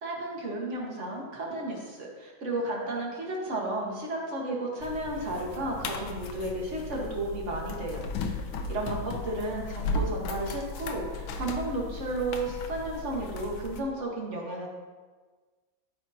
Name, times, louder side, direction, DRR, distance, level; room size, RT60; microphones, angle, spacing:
voice 1, 0.0-8.0 8.7-14.7, right 2 dB, 40° right, -2 dB, 1.5 m, -33 dB
sound 1, 4.8-13.8, left 3 dB, 80° left, 1.4 m, -36 dB
13.0 x 5.1 x 2.8 m, 1.4 s
omnidirectional pair, 2.2 m